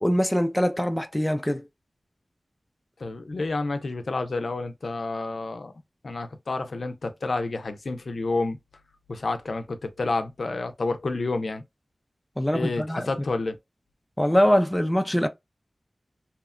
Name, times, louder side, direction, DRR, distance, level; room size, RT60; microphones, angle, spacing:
voice 1, 0.0-1.7 12.4-13.1 14.2-15.3, equal, 10° left, 0.4 m, -23 dB
voice 2, 3.0-5.7 6.0-8.6 9.1-11.6 12.5-13.6, left 3 dB, 80° left, 0.4 m, -29 dB
2.8 x 2.1 x 2.3 m
wide cardioid pair, 60°, 0 cm